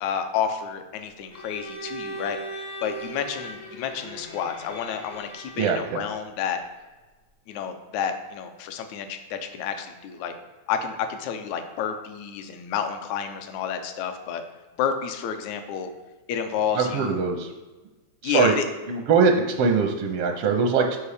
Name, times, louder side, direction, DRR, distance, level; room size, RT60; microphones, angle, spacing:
voice 1, 0.0-6.6 7.5-10.4 10.7-14.4 14.8-15.9 16.3-17.2 18.2-18.6, left 7 dB, 80° left, 7 dB, 2.0 m, -30 dB
Bowed string instrument, 1.3-5.8, right 2 dB, 55° left, 0.7 m, -38 dB
voice 2, 5.6-6.0 16.7-17.5 18.2-18.5 18.9-21.0, right 5 dB, 80° right, 4 dB, 1.3 m, -22 dB
7.1 x 5.0 x 4.9 m, 1.2 s
omnidirectional pair, 3.4 m